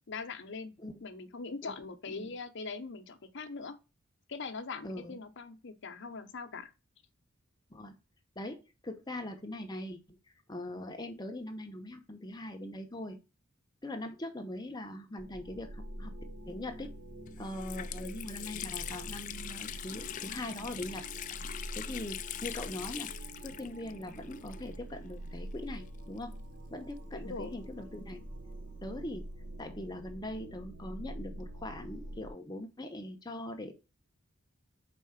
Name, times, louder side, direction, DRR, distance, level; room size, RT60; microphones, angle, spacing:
voice 1, 0.1-0.7 1.0-3.8 4.3-6.7 27.1-27.6, left 4 dB, 60° left, 0.8 m, -41 dB
voice 2, 4.8-5.2 7.7-8.0 8.4-10.2 10.5-13.2 13.8-16.1 16.5-16.9 17.4-21.1 21.4-23.1 23.4-26.4 26.7-28.2 28.8-29.3 29.6-33.7, left 1 dB, 20° left, 0.8 m, -41 dB
sound 1, 15.2-32.3, right 1 dB, 60° right, 0.9 m, -45 dB
Water tap faucet, 16.8-16.9 17.3-25.0 25.2-25.3 26.2-27.7, left 11 dB, 40° left, 0.3 m, -43 dB
4.8 x 4.1 x 5.6 m
head